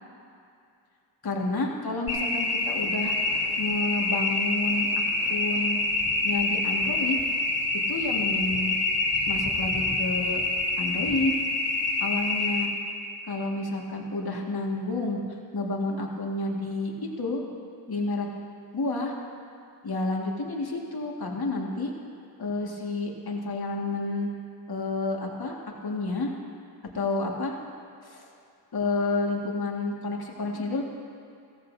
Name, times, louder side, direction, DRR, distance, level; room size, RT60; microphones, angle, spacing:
voice 1, 1.2-3.1 3.6-4.9 5.3-5.8 6.2-7.2 7.9-8.7 9.3-10.4 10.8-11.4 12.0-12.7 13.3-15.2 15.5-16.9 17.2-17.4 17.9-18.3 18.7-19.2 19.8-21.9 22.4-24.3 24.7-25.6 25.8-26.3 26.9-27.6 28.0-28.3 28.7-30.8, left 2 dB, 60° left, -1 dB, 2.0 m, -29 dB
sound 1, 2.1-12.7, left 2 dB, 35° left, 2.9 m, -26 dB
16.0 x 15.0 x 2.7 m, 2.4 s
cardioid pair, 45°, 42 cm